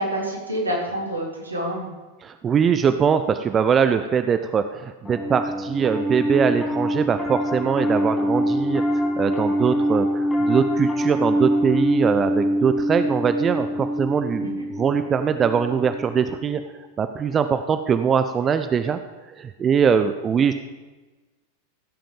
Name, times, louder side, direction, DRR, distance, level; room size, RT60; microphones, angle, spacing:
voice 1, 0.0-1.9 14.4-14.6, right 1 dB, 80° right, -3 dB, 3.3 m, -27 dB
voice 2, 2.2-14.5 14.8-16.6 17.0-19.0 19.4-20.5, right 7 dB, 25° right, 9 dB, 0.6 m, -22 dB
Piano, 5.0-16.5, equal, 10° left, 1.6 m, -24 dB
16.0 x 7.6 x 5.3 m, 1.2 s
figure-of-eight pair, 90°, 0 cm